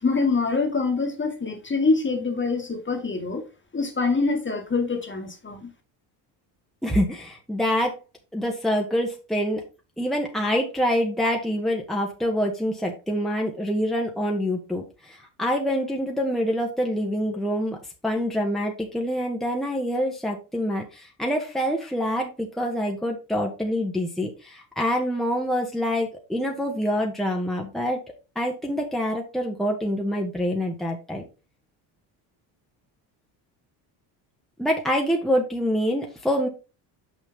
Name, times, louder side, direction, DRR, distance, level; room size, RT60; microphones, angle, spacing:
voice 1, 0.0-3.4 3.7-5.7, left 4 dB, 25° left, 2.1 m, -25 dB
voice 2, 6.8-7.9 8.3-9.6 10.0-17.8 18.0-28.0 28.3-31.2 34.6-36.5, equal, ahead, 1.7 m, -26 dB
6.2 x 6.2 x 3.6 m
supercardioid pair, 80°, 49 cm